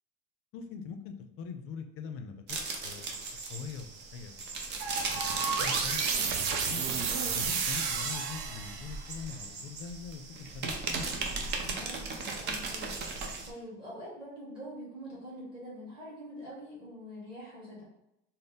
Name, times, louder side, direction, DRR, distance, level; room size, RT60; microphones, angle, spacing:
voice 1, 0.5-2.6 2.8-3.1 3.5-3.9 4.1-4.5 5.1-6.9 7.3-10.9, left 6 dB, 45° left, 6 dB, 0.4 m, -43 dB
sound 1, 2.5-13.5, right 4 dB, 35° right, 0.5 m, -37 dB
sound 2, 4.8-9.1, right 6 dB, 80° right, 0.6 m, -32 dB
voice 2, 11.5-17.8, equal, 15° right, -7 dB, 1.5 m, -45 dB
4.1 x 2.0 x 3.5 m, 0.83 s
cardioid pair, 150°, 31 cm